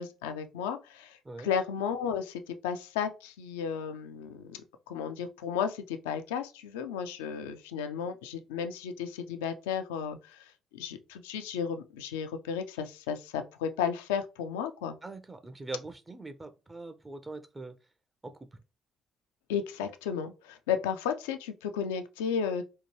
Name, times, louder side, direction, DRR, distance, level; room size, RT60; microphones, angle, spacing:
voice 1, 0.0-4.6 4.9-15.0 19.5-22.6, left 7 dB, 80° left, 0.3 m, -34 dB
voice 2, 15.0-17.9 18.2-18.6, right 3 dB, 25° right, 0.4 m, -42 dB
2.7 x 2.2 x 3.0 m
figure-of-eight pair, 45°, 0 cm